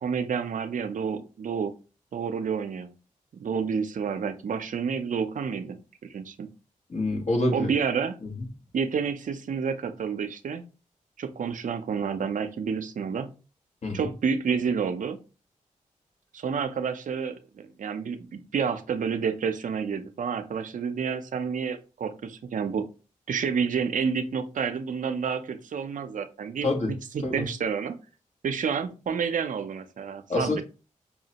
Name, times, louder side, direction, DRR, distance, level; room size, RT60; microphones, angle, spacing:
voice 1, 0.0-1.7 2.1-2.9 3.3-6.5 7.5-8.2 8.7-10.6 11.2-13.3 13.9-15.2 16.3-22.9 23.3-28.0 28.4-30.6, right 6 dB, 70° right, 8 dB, 0.5 m, -29 dB
voice 2, 6.9-7.7 8.2-8.5 13.8-14.1 26.6-26.9 27.2-27.4 30.3-30.6, left 2 dB, 55° left, 2 dB, 1.1 m, -27 dB
5.4 x 2.1 x 2.8 m, 0.32 s
cardioid pair, 45°, 14 cm